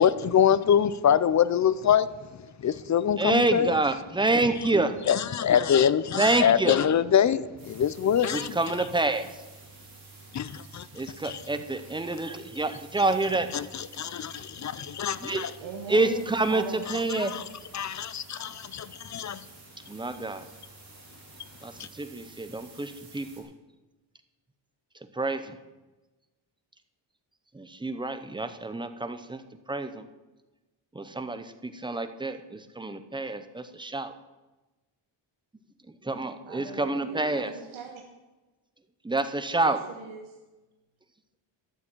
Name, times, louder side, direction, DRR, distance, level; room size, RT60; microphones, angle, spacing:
voice 1, 0.0-2.1 2.6-3.7 5.1-8.5 10.3-10.9 11.2-11.4 13.5-13.6 13.9-15.5 17.2-17.4 17.7-19.4 21.8-21.9, left 8 dB, 40° left, 0.5 m, -24 dB
voice 2, 3.2-5.0 6.2-6.8 8.3-9.4 10.9-13.5 15.2-15.5 15.9-17.3 19.9-20.4 21.6-23.5 25.1-25.6 27.5-30.0 30.9-34.1 36.0-37.5 39.0-39.8, right 2 dB, 10° right, 0.6 m, -28 dB
sound 1, 7.6-23.4, right 4 dB, 45° right, 3.9 m, -51 dB
voice 3, 15.6-17.2 36.4-38.0 39.6-40.4, right 5 dB, 75° right, 1.5 m, -40 dB
13.0 x 7.0 x 8.8 m
wide cardioid pair, 180°, 49 cm